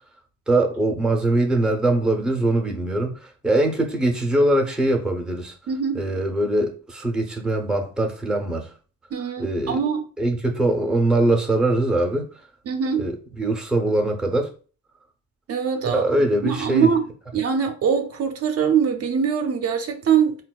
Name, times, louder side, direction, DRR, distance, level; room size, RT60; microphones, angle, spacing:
voice 1, 0.5-5.5 5.9-8.7 9.4-9.8 10.2-12.3 13.0-14.5 15.9-16.9, right 1 dB, ahead, 0.6 m, -22 dB
voice 2, 5.7-6.0 9.1-10.0 12.7-13.0 15.5-16.0 16.4-17.0 17.3-20.4, right 7 dB, 55° right, 0.5 m, -22 dB
4.0 x 2.2 x 2.2 m
cardioid pair, 90°, 30 cm